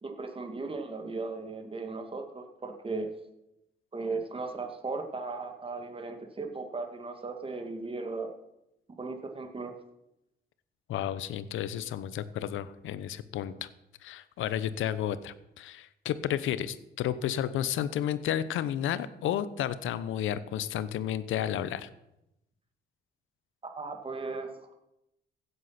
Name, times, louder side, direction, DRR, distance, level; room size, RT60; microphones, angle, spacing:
voice 1, 0.0-3.1 3.9-8.3 9.0-9.7 23.8-24.7, right 3 dB, 25° right, 4 dB, 2.2 m, -37 dB
voice 2, 10.9-13.7 14.0-21.9, left 10 dB, 80° left, 15 dB, 0.9 m, -32 dB
16.0 x 8.2 x 5.9 m, 0.87 s
cardioid pair, 90°, 20 cm